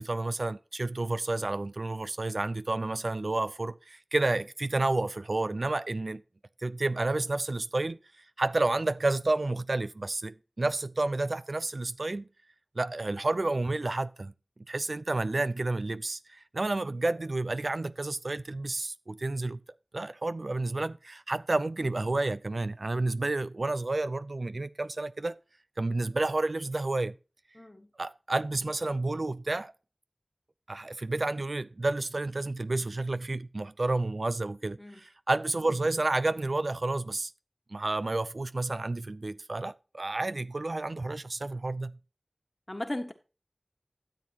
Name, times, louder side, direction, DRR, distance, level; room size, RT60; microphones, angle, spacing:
voice 1, 0.0-6.2 6.6-8.0 8.4-12.3 12.8-14.3 14.7-19.6 19.9-25.4 25.8-27.2 28.0-29.7 30.7-37.3 37.7-42.0, right 2 dB, 80° right, 0.5 m, -30 dB
voice 2, 27.5-27.9 34.8-34.9 42.7-43.1, left 1 dB, 35° left, 1.5 m, -36 dB
13.0 x 7.6 x 2.9 m
wide cardioid pair, 45°, 0 cm